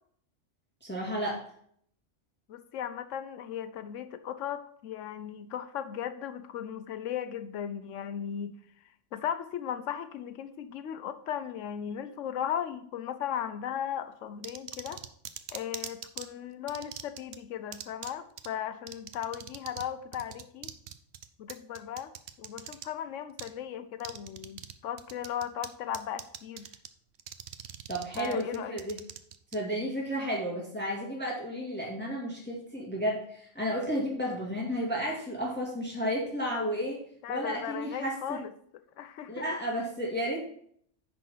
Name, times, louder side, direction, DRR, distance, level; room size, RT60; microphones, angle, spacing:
voice 1, 0.8-1.4 27.9-29.0 29.5-37.0 37.3-38.4 39.3-40.4, equal, 10° left, -3 dB, 1.9 m, -32 dB
voice 2, 2.5-8.5 9.1-15.0 15.5-20.7 21.4-22.1 22.4-26.7 28.2-28.8 37.2-38.5 39.0-39.5, left 9 dB, 85° left, 11 dB, 1.0 m, -37 dB
sound 1, 14.4-16.3 16.7-17.4 17.7-18.1 18.4-18.5 18.9-19.9 20.1-22.9 23.4-23.5 24.0-24.7 25.0-25.7 25.9-26.9 27.2-29.6, right 10 dB, 65° right, 0.9 m, -41 dB
10.0 x 4.2 x 5.6 m, 0.63 s
omnidirectional pair, 1.3 m